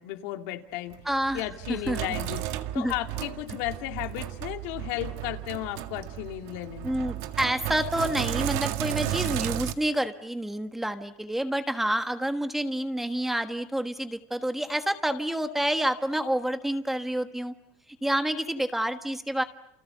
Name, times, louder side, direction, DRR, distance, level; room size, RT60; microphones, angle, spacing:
voice 1, 0.0-1.0 1.3-6.9, left 15 dB, 75° left, 5 dB, 2.4 m, -34 dB
Sink (filling or washing), 0.9-9.7, right 13 dB, 70° right, 1.9 m, -33 dB
voice 2, 1.0-1.4 1.7-2.2 2.7-2.9 6.8-17.5 18.0-19.4, right 1 dB, 5° right, 8 dB, 1.4 m, -28 dB
29.0 x 29.0 x 6.9 m, 0.79 s
cardioid pair, 155°, 7 cm